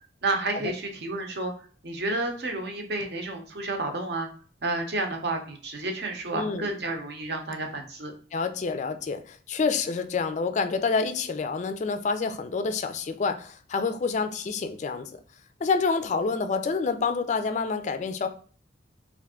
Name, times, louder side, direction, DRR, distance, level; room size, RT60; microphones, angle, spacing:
voice 1, 0.2-4.3 4.6-8.1, right 2 dB, 60° right, 3 dB, 0.7 m, -31 dB
voice 2, 6.3-6.7 8.3-15.1 15.6-18.3, left 4 dB, 40° left, 9 dB, 0.3 m, -28 dB
3.3 x 2.5 x 3.6 m, 0.43 s
head